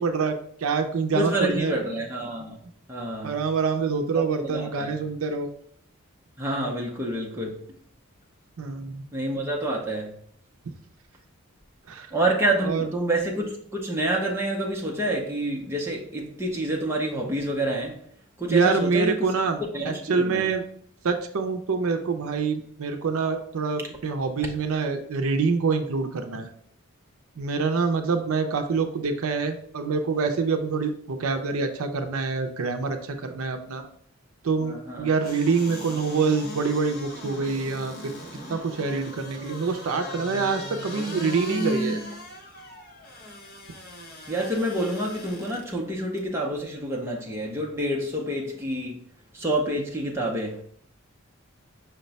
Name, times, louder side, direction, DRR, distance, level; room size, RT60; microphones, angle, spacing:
voice 1, 0.0-1.7 3.2-5.5 8.6-9.0 11.9-12.1 12.6-12.9 18.5-20.6 21.0-26.5 27.4-33.8 34.4-38.1 38.5-42.0, right 4 dB, 75° right, 0.5 m, -26 dB
voice 2, 1.1-2.6 2.9-3.4 4.1-5.0 6.4-7.5 9.1-10.1 12.1-18.0 18.4-19.3 19.7-20.5 34.6-35.1 44.3-49.0 49.3-50.6, right 1 dB, 10° right, 0.6 m, -28 dB
sound 1, 35.2-45.7 46.2-46.3, equal, 45° left, 1.0 m, -37 dB
5.7 x 2.2 x 4.0 m
head